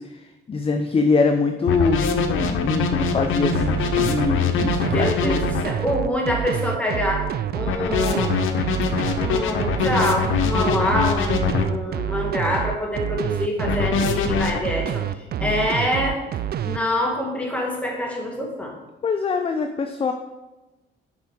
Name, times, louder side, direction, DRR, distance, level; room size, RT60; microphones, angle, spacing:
voice 1, 0.0-5.4 15.4-15.5 19.0-20.1, left 4 dB, 30° left, 6 dB, 0.6 m, -23 dB
sound 1, 1.7-5.6 7.7-11.6 13.7-14.6, left 6 dB, 85° left, 0.8 m, -23 dB
sound 2, 3.5-16.8, right 11 dB, 50° right, 0.4 m, -27 dB
voice 2, 4.9-5.4 5.6-8.3 9.2-16.2 16.6-18.7, left 1 dB, 5° left, -1 dB, 2.1 m, -25 dB
7.2 x 5.5 x 4.7 m, 1.1 s
cardioid pair, 90°, 20 cm